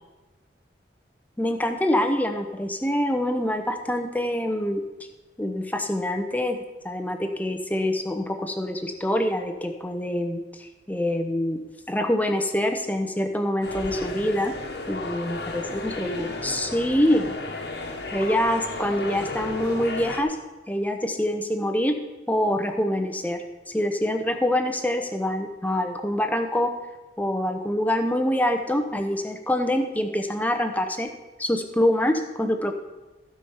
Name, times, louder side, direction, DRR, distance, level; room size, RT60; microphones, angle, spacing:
voice 1, 1.4-4.8 5.4-6.6 6.8-11.6 11.9-14.5 14.9-17.3 18.1-20.4 20.7-22.0 22.3-26.7 27.2-31.1 31.4-32.7, left 1 dB, 10° left, 6 dB, 0.8 m, -25 dB
sound 1, 13.6-20.2, left 2 dB, 60° left, 1.3 m, -33 dB
15.5 x 5.1 x 5.6 m, 1.1 s
head